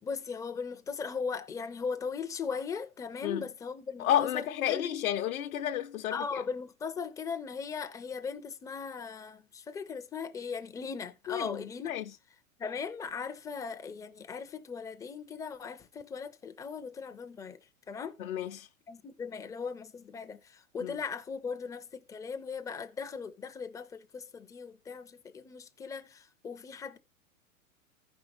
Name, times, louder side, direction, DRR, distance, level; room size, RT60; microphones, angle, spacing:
voice 1, 0.0-4.8 6.1-11.9 12.6-17.6 17.9-18.2 18.9-27.0, left 5 dB, 10° left, 0.4 m, -38 dB
voice 2, 4.0-6.4 11.3-12.1 18.2-18.7 20.8-21.0, left 11 dB, 70° left, 0.7 m, -31 dB
14.5 x 5.4 x 3.0 m
hypercardioid pair, 100°, 42 cm